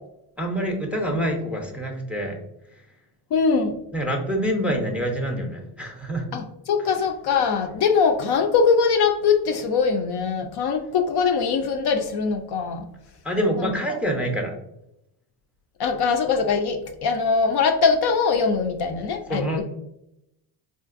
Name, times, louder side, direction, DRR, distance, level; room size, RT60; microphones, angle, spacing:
voice 1, 0.4-2.4 3.9-6.2 13.2-14.5 19.3-19.6, equal, 5° right, 2 dB, 0.6 m, -26 dB
voice 2, 3.3-3.8 6.3-12.9 13.6-13.7 15.8-19.6, left 5 dB, 55° left, 5 dB, 0.5 m, -22 dB
3.7 x 2.5 x 2.4 m, 0.83 s
cardioid pair, 90°, 47 cm